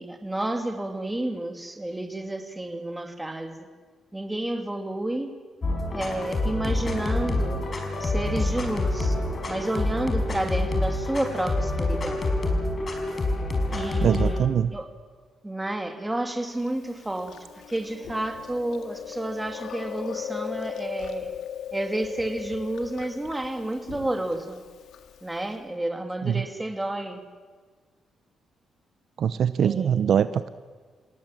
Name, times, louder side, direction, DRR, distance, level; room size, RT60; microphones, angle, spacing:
voice 1, 0.0-3.6 4.1-5.3 5.9-7.6 8.0-9.1 9.5-12.2 13.7-14.9 15.4-17.4 17.7-21.3 21.7-24.6 25.2-27.2 29.6-30.2, right 1 dB, 10° right, 5 dB, 2.8 m, -30 dB
sound 1, 5.6-14.4, left 2 dB, 35° left, 5.1 m, -27 dB
voice 2, 14.0-14.7 26.2-26.5 29.2-30.5, right 8 dB, 65° right, 13 dB, 0.8 m, -23 dB
Chewing mastication, 16.6-25.6, left 10 dB, 85° left, 2.1 m, -39 dB
28.0 x 18.0 x 7.5 m, 1.5 s
cardioid pair, 100°, 0 cm